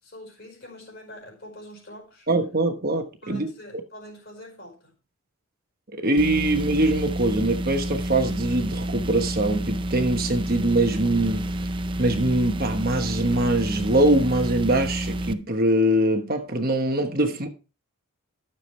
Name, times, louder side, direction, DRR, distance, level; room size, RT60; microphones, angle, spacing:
voice 1, 0.0-2.3 3.2-4.9 17.2-17.5, left 1 dB, 45° left, 4.7 m, -44 dB
voice 2, 2.3-3.5 6.0-11.5 12.0-17.5, right 1 dB, 40° right, 1.2 m, -23 dB
sound 1, 6.2-15.3, right 1 dB, 20° right, 0.4 m, -29 dB
13.0 x 7.1 x 3.3 m
head